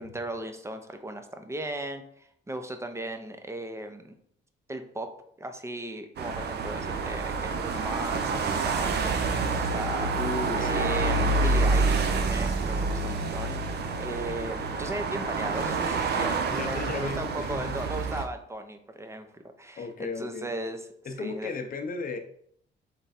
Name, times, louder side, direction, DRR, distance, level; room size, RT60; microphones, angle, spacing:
voice 1, 0.0-4.1 4.7-5.1 5.4-10.1 10.6-20.9 21.2-21.5, right 1 dB, 15° right, 7 dB, 0.6 m, -37 dB
sound 1, 6.2-18.3, right 3 dB, 55° right, 0.6 m, -28 dB
voice 2, 10.1-10.8 13.8-13.9 16.5-17.8 19.8-20.5 21.0-22.2, left 3 dB, 45° left, 6 dB, 0.7 m, -35 dB
3.7 x 3.4 x 4.2 m, 0.68 s
cardioid pair, 90°, 20 cm